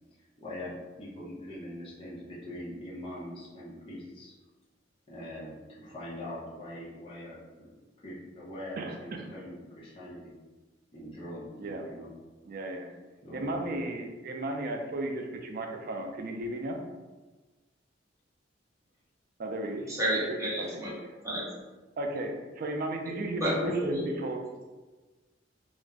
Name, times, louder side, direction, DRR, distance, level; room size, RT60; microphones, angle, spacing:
voice 1, 0.4-4.3 5.1-7.7 8.0-10.3 10.9-11.5 11.8-12.1 13.2-13.6, left 1 dB, 30° left, -7 dB, 0.7 m, -42 dB
voice 2, 8.8-9.2 11.6-11.9 12.5-12.9 13.3-16.8 19.4-20.8 22.0-24.4, right 1 dB, 50° right, 3 dB, 0.4 m, -35 dB
voice 3, 19.9-20.9 21.2-21.5 23.0-24.1, equal, 15° right, -7 dB, 0.9 m, -31 dB
2.5 x 2.0 x 3.4 m, 1.2 s
head